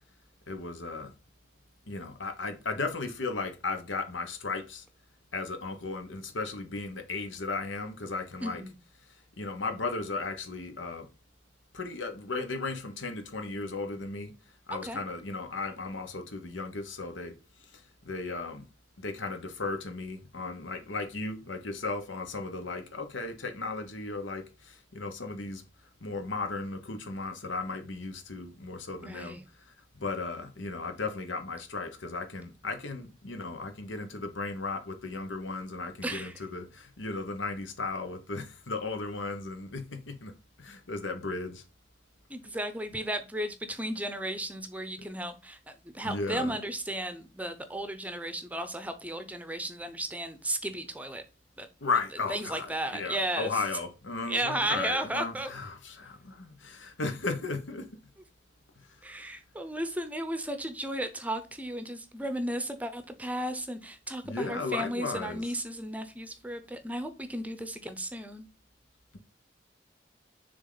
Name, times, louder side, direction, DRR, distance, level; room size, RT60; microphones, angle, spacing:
voice 1, 0.5-1.1 1.9-4.8 5.3-8.6 9.4-11.1 11.7-14.3 14.7-17.3 18.0-18.6 19.0-25.6 26.0-29.4 30.0-40.3 40.6-41.6 45.0-45.1 46.0-46.6 51.8-57.9 64.2-65.4, left 3 dB, 90° left, 1.1 m, -35 dB
voice 2, 8.4-8.7 14.8-15.0 29.0-29.4 36.0-36.4 42.3-51.2 51.6-51.7 52.3-53.6 54.3-55.5 59.0-68.5, right 1 dB, 10° right, 0.6 m, -34 dB
6.7 x 3.6 x 3.9 m
head